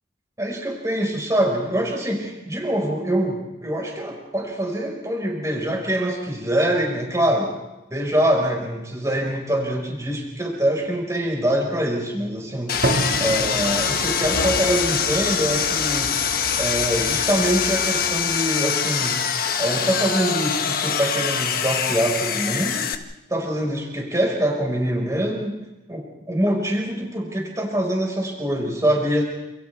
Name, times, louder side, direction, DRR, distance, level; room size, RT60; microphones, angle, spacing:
voice 1, 0.4-7.6 7.9-16.1 16.6-19.2 19.6-22.8 23.3-25.6 25.9-29.2, right 1 dB, 15° right, 0 dB, 5.4 m, -24 dB
sound 1, 12.7-18.7, left 2 dB, 80° left, 3.2 m, -34 dB
Sawing, 12.7-22.9, left 7 dB, 50° left, 1.4 m, -24 dB
sound 2, 12.8-20.9, right 1 dB, 80° right, 2.2 m, -33 dB
29.0 x 28.5 x 3.6 m, 0.97 s
head